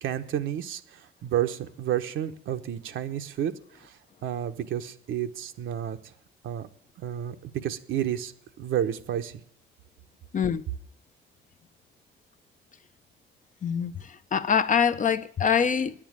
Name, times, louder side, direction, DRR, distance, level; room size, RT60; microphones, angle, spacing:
voice 1, 0.0-3.5 3.8-3.9 4.2-6.0 6.4-6.7 7.0-8.3 8.6-9.4, right 10 dB, 80° right, 1.1 m, -30 dB
voice 2, 13.6-13.9 14.3-15.9, left 7 dB, 40° left, 0.7 m, -24 dB
10.5 x 8.8 x 8.8 m
cardioid pair, 90°, 20 cm